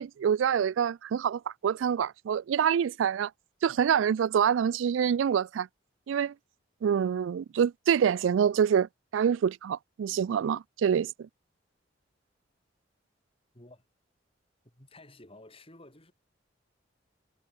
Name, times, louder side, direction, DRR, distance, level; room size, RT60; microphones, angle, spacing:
voice 1, 0.0-3.3 3.6-5.7 6.1-6.3 6.8-11.3, right 8 dB, 85° right, 0.3 m, -26 dB
voice 2, 13.5-13.8 14.6-16.1, left 2 dB, 30° left, 7.6 m, -53 dB
head